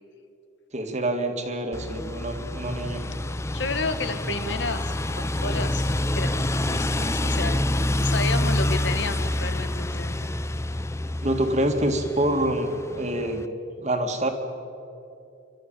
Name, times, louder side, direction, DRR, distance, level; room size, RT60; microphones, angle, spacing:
voice 1, 0.7-3.0 11.2-13.5 13.8-14.3, right 1 dB, 35° right, 5 dB, 2.2 m, -26 dB
sound 1, 1.7-13.5, left 1 dB, 15° left, 0.5 m, -27 dB
voice 2, 3.5-10.2, left 3 dB, 60° left, 10 dB, 1.5 m, -32 dB
30.0 x 13.0 x 9.0 m, 2.7 s
head